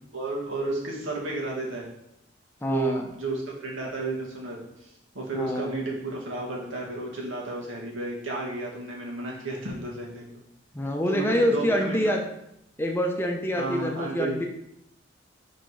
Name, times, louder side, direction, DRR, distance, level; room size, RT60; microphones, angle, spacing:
voice 1, 0.1-1.9 2.7-10.2 11.1-12.2 13.6-14.4, right 2 dB, 85° right, -2 dB, 1.8 m, -32 dB
voice 2, 2.6-3.1 5.3-5.7 10.7-12.2 12.8-14.5, equal, 10° left, 1 dB, 0.7 m, -26 dB
5.0 x 4.4 x 4.7 m, 0.79 s
head